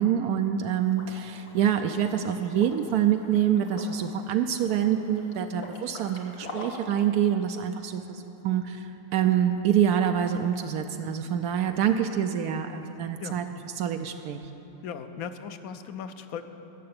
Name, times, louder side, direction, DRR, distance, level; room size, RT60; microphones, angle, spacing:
voice 1, 0.0-8.9 9.1-13.4 13.8-14.4, right 9 dB, 80° right, 6 dB, 1.1 m, -26 dB
Liquid, 0.9-7.0, left 2 dB, 90° left, 1.9 m, -45 dB
voice 2, 14.8-16.5, left 7 dB, 70° left, 9 dB, 1.1 m, -37 dB
14.0 x 6.7 x 8.7 m, 3.0 s
omnidirectional pair, 1.6 m